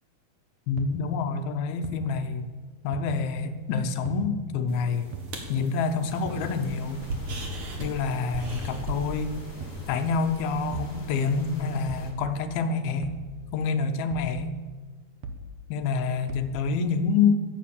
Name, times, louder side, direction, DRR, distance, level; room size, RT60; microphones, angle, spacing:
voice 1, 0.7-2.5 2.8-5.1 5.5-7.1 7.8-9.4 9.9-13.1 13.5-14.6 15.7-17.4, left 5 dB, 85° left, 9 dB, 2.9 m, -27 dB
sound 1, 0.8-0.9 1.8-1.9 2.9-3.0 4.1-4.2 5.1-5.3 6.3-6.5 7.3-7.5 8.5-8.7 9.6-9.8 10.7-11.0 11.9-12.1 13.0-13.2 14.1-14.3 15.2-15.5 16.3-16.5, right 5 dB, 60° right, 2.0 m, -38 dB
sound 2, 4.7-9.9, right 2 dB, 45° right, 2.2 m, -38 dB
sound 3, 6.4-12.1, left 2 dB, 30° left, 1.7 m, -45 dB
16.0 x 9.9 x 7.2 m, 1.4 s
omnidirectional pair, 4.2 m